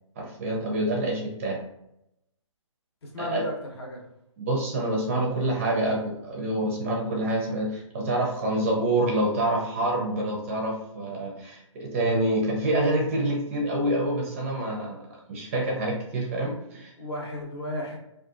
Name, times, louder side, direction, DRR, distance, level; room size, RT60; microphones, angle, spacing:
voice 1, 0.2-1.6 3.2-3.4 4.4-15.0 15.3-16.9, right 1 dB, 25° right, -1 dB, 0.5 m, -27 dB
voice 2, 3.0-4.0 17.0-18.0, equal, 50° left, 0 dB, 0.8 m, -33 dB
2.6 x 2.3 x 2.4 m, 0.83 s
hypercardioid pair, 150°, 17 cm